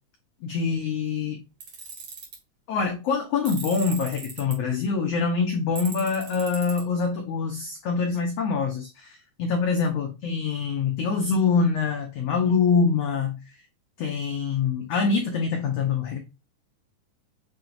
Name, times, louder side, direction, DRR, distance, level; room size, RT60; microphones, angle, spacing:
voice 1, 0.4-1.4 2.7-13.4 14.0-16.2, left 5 dB, 85° left, 1.4 m, -25 dB
Tools, 1.6-2.4 3.4-4.5 5.8-6.8, right 5 dB, 45° right, 2.3 m, -38 dB
7.3 x 2.9 x 2.5 m
omnidirectional pair, 3.8 m